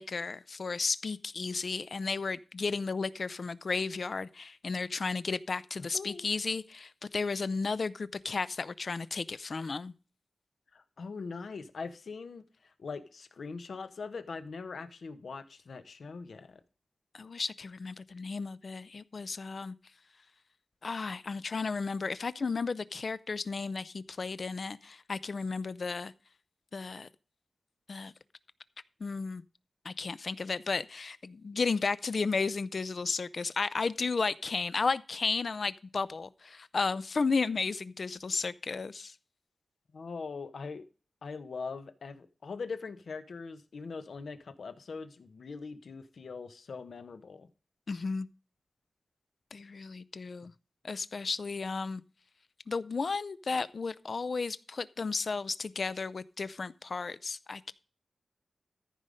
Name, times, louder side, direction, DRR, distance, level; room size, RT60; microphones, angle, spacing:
voice 1, 0.0-9.9 17.1-19.8 20.8-26.1 26.7-27.1 27.9-28.1 29.0-29.4 29.8-39.1 47.9-48.3 49.5-50.5 50.8-52.0 52.7-57.7, left 4 dB, 50° left, 0.5 m, -33 dB
voice 2, 5.9-6.3 10.7-16.6 39.9-40.8 41.2-47.5, left 4 dB, 65° left, 1.0 m, -42 dB
14.0 x 5.4 x 5.0 m
wide cardioid pair, 150°, 0 cm